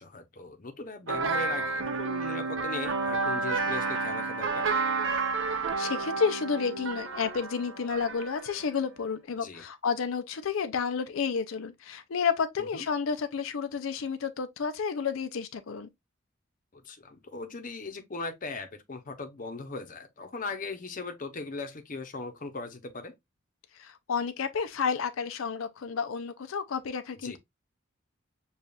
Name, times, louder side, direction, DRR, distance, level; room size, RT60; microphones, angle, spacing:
voice 1, 0.0-4.7 9.4-9.6 12.6-12.9 16.7-23.1 27.2-27.4, left 3 dB, 40° left, 0.7 m, -39 dB
sound 1, 1.1-8.8, right 4 dB, 70° right, 0.7 m, -31 dB
voice 2, 5.5-15.9 23.8-27.4, left 6 dB, 85° left, 0.5 m, -31 dB
6.8 x 2.4 x 2.3 m
head